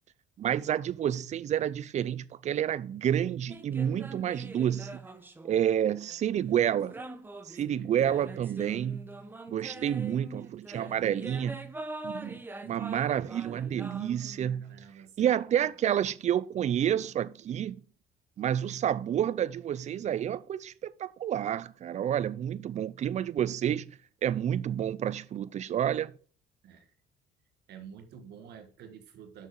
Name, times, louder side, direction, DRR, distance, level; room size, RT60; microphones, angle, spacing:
voice 1, 0.4-5.0 5.4-6.9 7.5-9.1 9.5-11.5 12.0-14.8 15.2-17.8 18.4-23.9 24.2-26.1, right 10 dB, 45° right, 0.5 m, -29 dB
sound 1, 3.5-6.2 6.9-14.6, right 2 dB, 10° right, 0.8 m, -44 dB
voice 2, 7.6-8.8 9.6-10.3 10.7-11.5 14.5-15.7 26.6-26.9 27.7-29.5, right 7 dB, 75° right, 1.5 m, -48 dB
6.3 x 6.1 x 5.2 m
cardioid pair, 110°, 17 cm